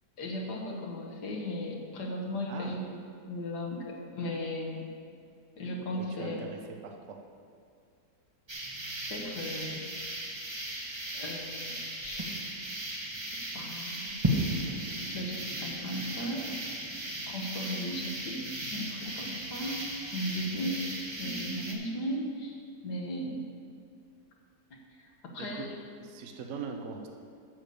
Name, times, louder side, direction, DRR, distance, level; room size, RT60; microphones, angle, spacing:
voice 1, 0.2-3.0 3.3-4.9 5.6-6.5 9.1-9.9 11.1-12.2 13.2-14.2 15.1-16.5 17.3-20.9 21.2-23.5 25.0-25.7, equal, 75° left, 0 dB, 1.8 m, -36 dB
voice 2, 6.0-7.2 25.4-25.7 26.0-27.1, right 5 dB, 55° right, 3 dB, 1.0 m, -41 dB
sound 1, 8.5-21.7, right 1 dB, 20° right, 0.8 m, -36 dB
9.0 x 6.7 x 6.8 m, 2.3 s
omnidirectional pair, 1.8 m